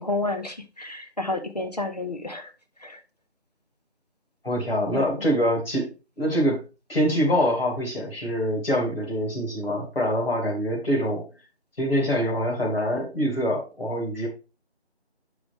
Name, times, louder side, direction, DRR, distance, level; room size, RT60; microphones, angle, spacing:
voice 1, 0.0-2.5 2.8-3.0 4.9-5.0, left 2 dB, 40° left, 6 dB, 0.8 m, -30 dB
voice 2, 4.4-5.9 6.2-6.6 6.9-11.3 11.8-14.3, equal, 60° left, -2 dB, 2.6 m, -25 dB
6.6 x 4.8 x 3.4 m, 0.30 s
figure-of-eight pair, 175°, 33 cm